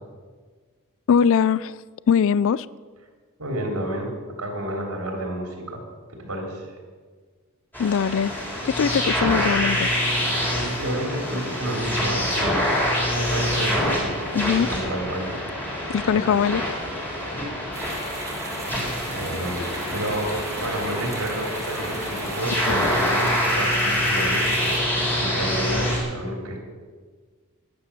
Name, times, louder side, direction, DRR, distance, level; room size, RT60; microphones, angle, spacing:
voice 1, 1.1-1.8 2.1-2.7 7.8-8.3 8.7-9.9 14.3-14.7 15.9-16.6, left 7 dB, 65° left, 0.3 m, -21 dB
voice 2, 3.4-4.1 4.4-5.8 6.2-6.7 10.6-12.7 13.1-14.3 14.6-15.3 16.0-16.4 17.3-17.5 19.1-26.6, right 1 dB, 90° right, 3.3 m, -30 dB
sound 1, 7.7-26.0, equal, 10° left, 3.8 m, -25 dB
sound 2, 17.7-24.8, right 2 dB, 15° right, 2.3 m, -37 dB
12.0 x 10.5 x 6.9 m
head